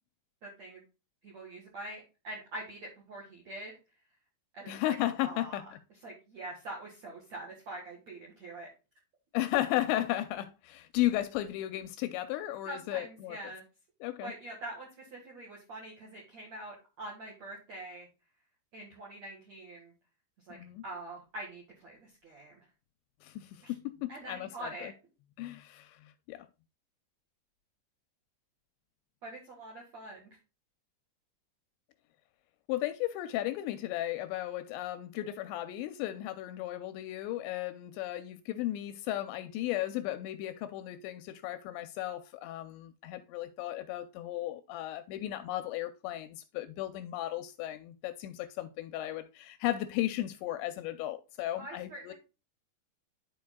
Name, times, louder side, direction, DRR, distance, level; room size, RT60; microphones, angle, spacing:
voice 1, 0.4-0.8 1.2-3.7 4.5-5.0 5.2-5.6 6.0-8.7 12.6-13.6 14.2-18.1 18.7-19.9 20.5-20.6 20.8-22.7 23.6-23.7 24.1-24.9 29.2-30.4 51.6-52.1, right 1 dB, 55° right, 2.1 m, -44 dB
voice 2, 4.7-5.6 9.3-13.4 14.0-14.3 20.5-20.8 23.2-24.9 25.4-26.0 26.3-26.5 32.7-52.1, left 14 dB, 85° left, 2.7 m, -35 dB
11.5 x 5.0 x 2.2 m
omnidirectional pair, 5.4 m